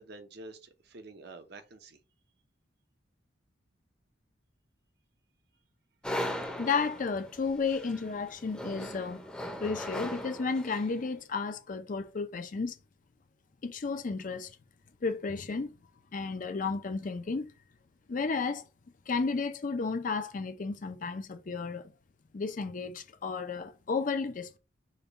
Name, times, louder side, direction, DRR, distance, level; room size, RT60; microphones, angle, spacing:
voice 1, 0.0-2.0, right 2 dB, 60° right, 0.7 m, -48 dB
sound 1, 6.0-11.0, equal, 5° left, 0.7 m, -38 dB
voice 2, 6.6-9.3 9.6-12.7 13.6-14.6 15.0-15.7 16.1-17.5 18.1-18.6 19.1-21.9 22.3-24.6, left 4 dB, 45° left, 0.5 m, -33 dB
5.1 x 2.3 x 4.0 m
head